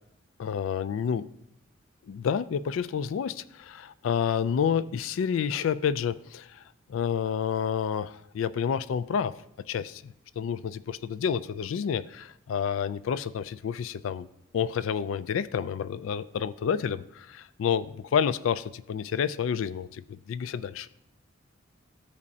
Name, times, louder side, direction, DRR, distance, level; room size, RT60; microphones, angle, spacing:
voice 1, 0.4-1.3 2.1-6.6 6.9-9.4 9.7-14.3 14.5-20.9, left 7 dB, 85° left, 15 dB, 0.3 m, -29 dB
14.0 x 5.2 x 2.7 m, 0.79 s
head